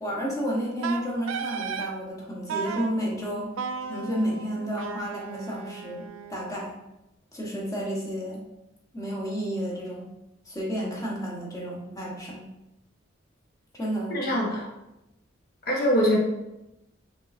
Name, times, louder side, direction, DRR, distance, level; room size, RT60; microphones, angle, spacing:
voice 1, 0.0-3.5 3.9-6.0 6.3-6.8 7.3-8.4 8.9-10.1 10.5-12.4 13.7-14.2, equal, 15° left, -3 dB, 1.0 m, -31 dB
Wind instrument woodwind instrument, 0.8-1.9 2.5-2.9 3.6-6.6, right 6 dB, 85° right, 0.4 m, -35 dB
voice 2, 14.1-14.7 15.7-16.2, equal, 50° left, -2 dB, 1.0 m, -23 dB
5.3 x 3.1 x 2.5 m, 0.92 s
head